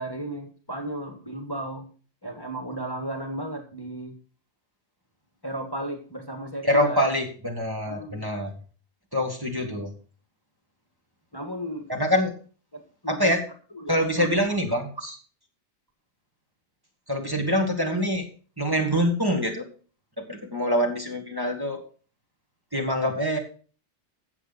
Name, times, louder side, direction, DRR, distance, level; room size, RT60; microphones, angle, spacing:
voice 1, 0.0-1.9 2.2-4.2 5.4-7.1 7.9-8.3 9.6-9.7 11.3-11.9 12.7-13.3 13.7-14.6, right 1 dB, 20° left, 4 dB, 1.7 m, -35 dB
voice 2, 6.6-8.5 9.1-9.9 11.9-12.3 13.1-13.4 13.9-15.2 17.1-18.2 18.6-19.7 20.2-21.8 22.7-23.4, equal, 20° right, 1 dB, 2.0 m, -25 dB
15.5 x 7.1 x 4.0 m, 0.40 s
omnidirectional pair, 1.2 m